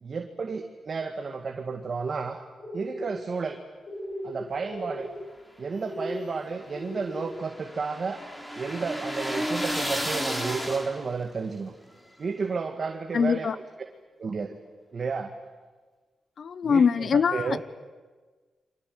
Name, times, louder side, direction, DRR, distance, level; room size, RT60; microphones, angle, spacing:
voice 1, 0.0-2.4 2.7-3.6 4.2-5.1 5.6-8.2 8.5-11.7 12.2-13.6 14.2-14.5 14.9-15.4 16.6-17.6, right 4 dB, 50° right, 2.0 m, -32 dB
sound 1, 2.6-3.1 3.8-4.3 4.6-5.1 5.8-6.2 6.7-7.3, left 1 dB, 45° left, 5.0 m, -37 dB
sound 2, 5.8-11.3, equal, 10° left, 4.3 m, -33 dB
voice 2, 13.1-13.5 16.4-17.6, left 6 dB, 60° left, 0.9 m, -23 dB
29.5 x 24.5 x 7.9 m
cardioid pair, 90°, 0 cm